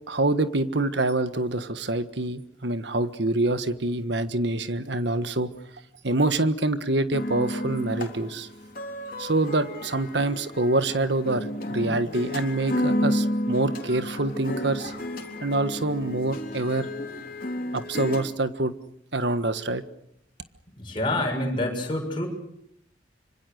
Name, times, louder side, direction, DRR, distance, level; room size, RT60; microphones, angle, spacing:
voice 1, 0.1-5.5 6.0-8.5 9.2-14.9 15.4-16.9 17.7-18.7 19.1-19.8, right 2 dB, 65° right, 11 dB, 1.5 m, -26 dB
sound 1, 7.1-18.2, left 1 dB, 45° left, 3.8 m, -31 dB
voice 2, 20.8-22.3, left 1 dB, 25° left, 1 dB, 6.9 m, -27 dB
26.0 x 25.5 x 6.5 m, 0.75 s
head